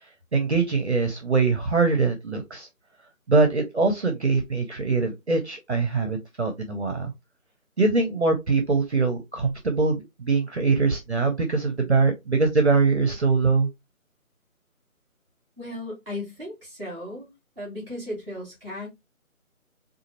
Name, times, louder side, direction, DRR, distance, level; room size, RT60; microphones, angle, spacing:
voice 1, 0.3-2.7 3.3-7.1 7.8-13.7, right 4 dB, 50° right, 0.8 m, -23 dB
voice 2, 15.6-17.3 17.6-18.9, left 1 dB, ahead, 1.8 m, -35 dB
3.8 x 2.5 x 2.9 m
figure-of-eight pair, 170°, 43 cm